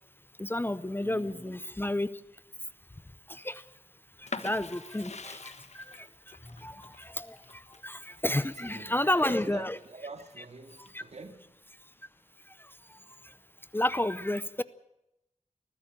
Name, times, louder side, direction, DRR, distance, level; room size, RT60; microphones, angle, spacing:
voice 1, 0.4-2.1 3.3-3.6 4.2-9.8 10.8-11.0 12.5-13.4 13.7-14.6, left 1 dB, 15° left, 0.6 m, -32 dB
voice 2, 1.0-1.6 8.6-11.6, right 3 dB, 60° right, 2.0 m, -46 dB
sound 1, 4.3-9.9 10.3-11.2, left 4 dB, 65° left, 1.4 m, -44 dB
20.5 x 15.0 x 8.9 m
wide cardioid pair, 90°, 13 cm